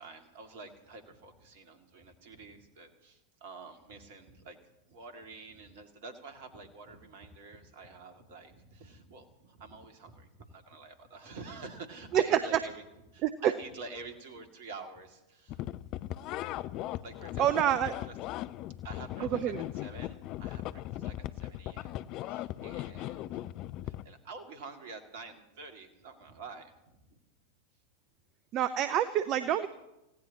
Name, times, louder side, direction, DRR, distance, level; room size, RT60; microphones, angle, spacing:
voice 1, 0.0-4.6 4.9-12.8 13.1-15.7 17.0-18.1 18.8-23.5 23.8-27.2, right 4 dB, 50° right, 5 dB, 2.4 m, -48 dB
sound 1, 15.5-24.1, left 14 dB, 40° left, 0.5 m, -38 dB
voice 2, 17.4-17.9 19.2-19.6 28.5-29.7, right 11 dB, 35° right, 13 dB, 0.6 m, -27 dB
28.0 x 16.5 x 3.0 m, 0.94 s
figure-of-eight pair, 90°, 0 cm